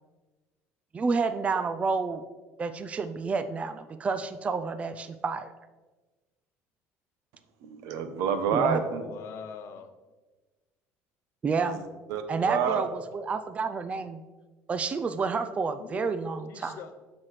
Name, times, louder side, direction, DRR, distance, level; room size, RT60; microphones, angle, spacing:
voice 1, 0.9-2.2 2.6-5.5 8.5-8.8 11.4-11.8 12.3-12.9 13.1-14.2 14.7-16.8, right 4 dB, 25° right, 10 dB, 0.3 m, -29 dB
voice 2, 7.6-9.0 11.6-12.8, right 7 dB, 75° right, 9 dB, 0.8 m, -29 dB
voice 3, 9.0-9.9 15.8-16.2 16.5-17.0, left 7 dB, 55° left, 8 dB, 0.7 m, -42 dB
7.5 x 6.1 x 3.1 m, 1.3 s
cardioid pair, 125°, 6 cm